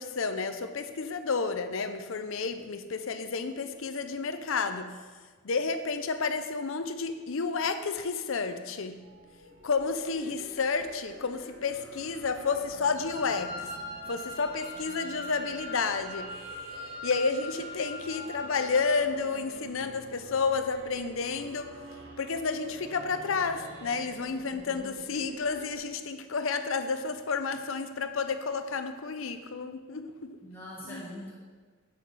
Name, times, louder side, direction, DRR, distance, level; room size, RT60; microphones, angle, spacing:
voice 1, 0.0-4.9 5.4-9.0 9.6-13.7 14.1-16.3 17.0-21.7 22.2-30.4 30.8-31.0, left 4 dB, 70° left, 9 dB, 0.6 m, -31 dB
sound 1, 8.9-25.8, right 1 dB, 65° right, 1.8 m, -48 dB
Wind instrument woodwind instrument, 12.9-19.0, left 1 dB, 30° right, 2.3 m, -41 dB
voice 2, 24.5-25.0 30.4-31.3, left 1 dB, 10° left, -7 dB, 1.9 m, -43 dB
8.5 x 7.5 x 4.1 m, 1.5 s
head